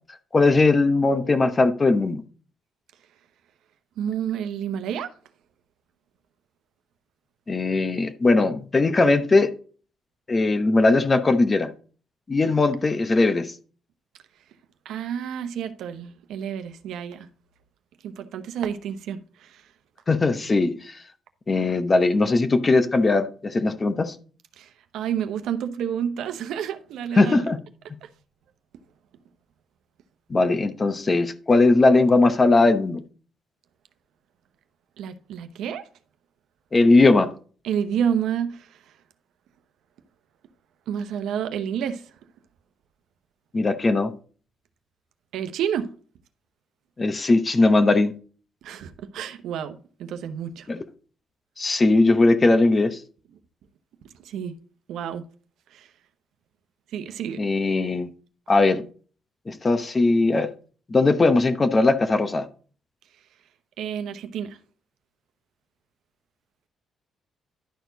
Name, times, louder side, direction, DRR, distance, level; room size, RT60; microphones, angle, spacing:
voice 1, 0.3-2.2 7.5-9.5 10.3-11.7 12.3-13.5 20.1-21.0 21.5-24.2 27.1-27.6 30.3-33.0 36.7-37.3 43.5-44.1 47.0-48.1 50.7-50.8 51.6-53.0 57.4-58.1 58.5-58.9 59.5-60.5 60.9-62.5, left 3 dB, 30° left, 0.9 m, -19 dB
voice 2, 4.0-5.1 14.8-17.3 18.0-19.6 24.6-27.5 28.0-28.1 35.0-35.8 37.6-38.8 40.9-42.0 45.3-45.9 48.6-50.7 54.2-54.6 54.9-55.3 55.7-55.9 56.9-57.5 63.8-64.6, right 8 dB, 80° right, 0.8 m, -29 dB
11.5 x 4.5 x 3.9 m
cardioid pair, 90°, 0 cm